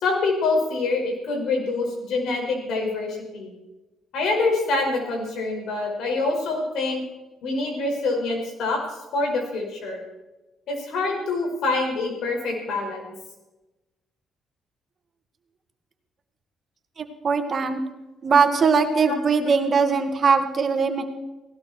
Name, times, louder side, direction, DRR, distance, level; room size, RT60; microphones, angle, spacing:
voice 1, 0.0-3.5 4.1-7.0 7.4-8.8 9.1-10.0 10.7-13.0 19.1-19.2, left 3 dB, 80° left, 2 dB, 5.3 m, -25 dB
voice 2, 17.0-17.8 18.2-21.0, right 5 dB, 45° right, 6 dB, 1.9 m, -21 dB
18.5 x 17.5 x 4.4 m, 1.1 s
cardioid pair, 90°, 0 cm